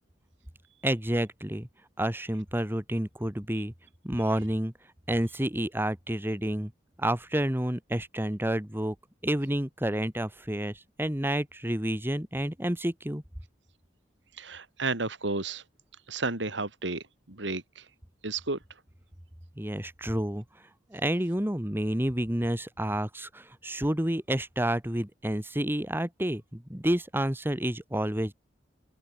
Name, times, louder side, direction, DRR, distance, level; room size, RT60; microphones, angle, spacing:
voice 1, 0.8-1.7 2.0-3.7 4.0-4.7 5.1-6.7 7.0-9.0 9.2-13.2 19.6-20.4 20.9-28.3, right 1 dB, 10° right, 1.9 m, -29 dB
voice 2, 14.4-15.6 16.1-17.8 18.2-18.6, right 3 dB, 75° right, 3.0 m, -32 dB
open air
head